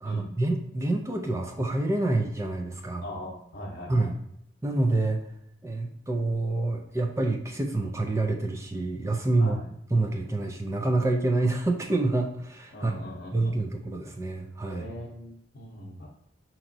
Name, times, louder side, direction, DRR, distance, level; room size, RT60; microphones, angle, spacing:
voice 1, 0.0-3.0 3.9-4.1 4.6-5.3 5.6-9.6 9.9-12.9 13.3-14.9, right 2 dB, 15° right, 2 dB, 0.3 m, -27 dB
voice 2, 3.0-4.1 9.4-9.7 12.7-13.6 14.7-16.1, left 1 dB, 55° left, -6 dB, 0.8 m, -40 dB
5.4 x 2.9 x 2.6 m, 0.72 s
head